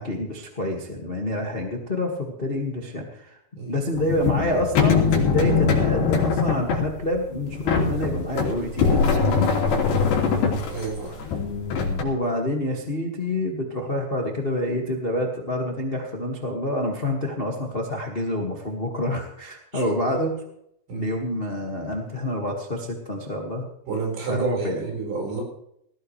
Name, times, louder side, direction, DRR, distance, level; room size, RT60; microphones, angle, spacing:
voice 1, 0.0-3.4 3.7-9.5 11.1-11.2 12.0-20.3 20.9-23.7 24.3-24.8, left 1 dB, 35° left, 0 dB, 0.8 m, -27 dB
sound 1, 4.0-12.0, left 5 dB, 75° left, 5.0 m, -22 dB
voice 2, 10.7-11.1 19.7-19.8 20.9-21.1 23.9-25.4, right 4 dB, 75° right, -1 dB, 7.3 m, -30 dB
19.0 x 15.5 x 3.3 m, 0.73 s
omnidirectional pair, 5.0 m